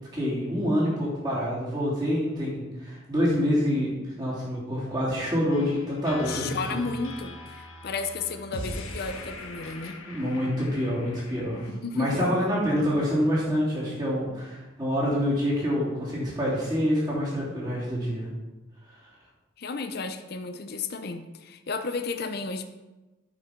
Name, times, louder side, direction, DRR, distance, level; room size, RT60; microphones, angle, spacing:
voice 1, 0.1-3.9 4.2-6.8 10.0-18.3, equal, 20° right, -7 dB, 3.0 m, -27 dB
sound 1, 5.5-11.7, left 2 dB, 75° left, 1.2 m, -41 dB
voice 2, 6.3-10.0 11.7-12.4 19.6-22.6, left 4 dB, 50° left, 8 dB, 0.6 m, -33 dB
9.4 x 5.4 x 5.1 m, 1.1 s
head